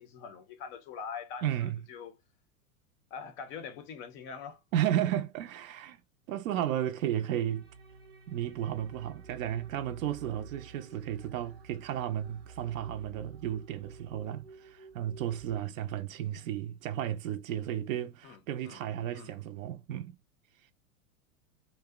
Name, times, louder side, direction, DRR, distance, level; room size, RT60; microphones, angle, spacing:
voice 1, 0.0-2.1 3.1-4.6 18.2-18.4 18.6-18.8 19.1-19.3, left 6 dB, 30° left, 0.4 m, -43 dB
voice 2, 1.4-1.8 4.7-6.0 6.3-7.7 8.3-20.2, right 11 dB, 70° right, 0.5 m, -33 dB
sound 1, 7.5-15.6, right 5 dB, 25° right, 0.7 m, -51 dB
2.6 x 2.0 x 2.3 m
hypercardioid pair, 115°, 42 cm